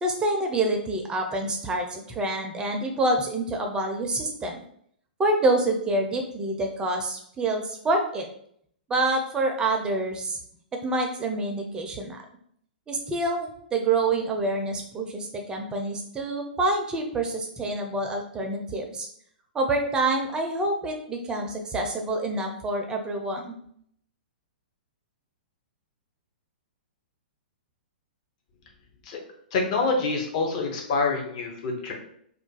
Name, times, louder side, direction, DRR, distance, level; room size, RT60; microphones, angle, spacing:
voice 1, 0.0-4.6 5.2-8.3 8.9-10.4 10.8-12.2 12.9-19.1 19.5-23.6, right 2 dB, 15° right, 3 dB, 0.4 m, -27 dB
voice 2, 29.5-31.9, left 3 dB, 45° left, 1 dB, 0.8 m, -26 dB
2.4 x 2.2 x 3.8 m, 0.66 s
figure-of-eight pair, 115°, 5 cm